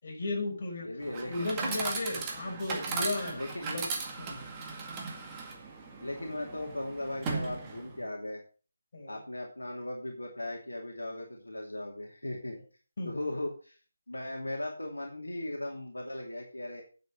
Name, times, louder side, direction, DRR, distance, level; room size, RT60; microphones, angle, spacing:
voice 1, 0.0-0.9 1.3-3.9 4.2-4.5 6.1-6.4 8.9-9.2 13.0-13.1, left 2 dB, 40° left, 5.7 m, -35 dB
voice 2, 0.8-1.5 3.3-3.7 6.0-8.4 9.1-12.6 13.0-13.8 14.1-16.8, left 1 dB, 75° left, 2.7 m, -37 dB
Chatter / Coin (dropping), 1.0-8.0, right 4 dB, 15° right, 1.9 m, -37 dB
9.3 x 7.7 x 6.2 m
figure-of-eight pair, 155°, 0 cm